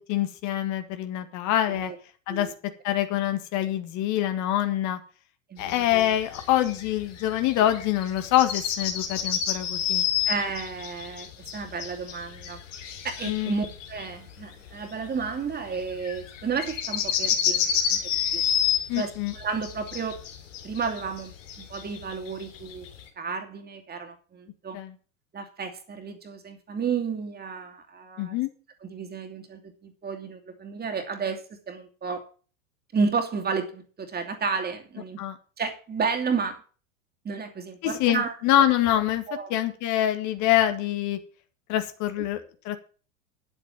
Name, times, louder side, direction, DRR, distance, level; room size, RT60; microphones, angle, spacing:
voice 1, 0.1-1.9 2.3-2.5 2.8-5.0 5.6-10.1 13.2-13.5 18.9-19.3 24.7-24.9 28.2-28.5 35.2-35.4 37.8-39.2 39.5-41.2 41.7-42.8, left 12 dB, 45° left, 9 dB, 1.8 m, -25 dB
voice 2, 5.5-6.1 7.6-7.7 10.3-11.3 11.5-12.6 13.0-18.0 18.3-18.4 19.0-20.2 20.6-21.3 21.6-22.9 23.2-24.8 25.3-28.4 28.8-32.2 32.9-35.2 35.6-36.6 37.2-38.3 39.3-39.6, right 5 dB, 25° right, 4 dB, 2.6 m, -32 dB
sound 1, 5.6-23.0, left 9 dB, 65° left, 3.0 m, -30 dB
10.5 x 7.9 x 7.2 m, 0.39 s
figure-of-eight pair, 85°, 40 cm